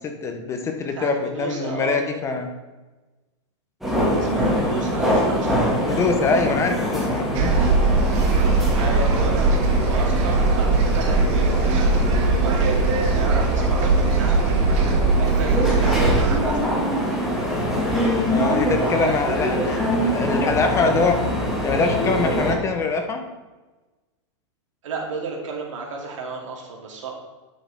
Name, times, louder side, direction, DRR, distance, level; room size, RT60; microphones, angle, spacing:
voice 1, 0.0-2.5 5.9-7.6 18.3-21.2 21.6-23.2, left 4 dB, 15° left, 5 dB, 0.7 m, -24 dB
voice 2, 0.9-2.0 4.2-5.7 8.7-9.5 9.9-16.8 18.9-19.2 24.8-27.1, right 4 dB, 75° right, 0 dB, 2.4 m, -33 dB
sound 1, 3.8-22.5, equal, ahead, 1.8 m, -24 dB
sound 2, 7.3-16.4, right 3 dB, 35° right, 0.9 m, -20 dB
9.9 x 6.4 x 3.4 m, 1.2 s
hypercardioid pair, 145°, 16 cm